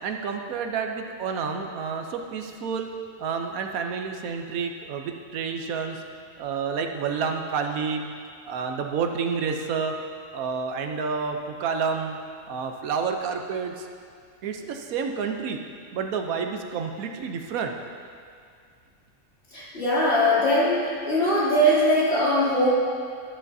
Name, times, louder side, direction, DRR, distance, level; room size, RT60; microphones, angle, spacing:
voice 1, 0.0-2.9 3.2-6.0 6.4-8.0 8.5-9.9 10.3-12.2 12.5-13.9 14.4-15.6 15.9-17.7, right 5 dB, 85° right, 4 dB, 1.2 m, -29 dB
voice 2, 19.5-22.7, equal, 50° left, -10 dB, 3.0 m, -21 dB
11.0 x 11.0 x 2.7 m, 2.2 s
omnidirectional pair, 1.5 m